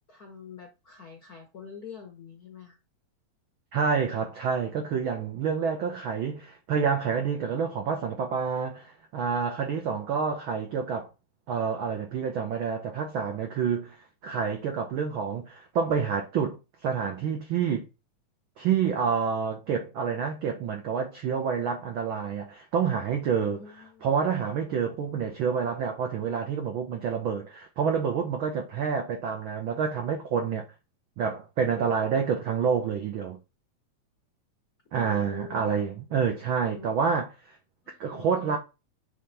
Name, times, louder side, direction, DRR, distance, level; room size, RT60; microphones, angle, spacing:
voice 1, 0.1-2.8 23.4-24.0 34.9-35.8 36.7-37.0 37.8-38.6, left 6 dB, 70° left, 0.8 m, -45 dB
voice 2, 3.7-11.1 11.5-14.0 14.2-17.9 18.6-23.6 24.0-30.7 31.2-33.4 34.9-37.6 38.0-38.6, right 6 dB, 90° right, 1.1 m, -28 dB
5.5 x 3.3 x 5.5 m
omnidirectional pair, 3.4 m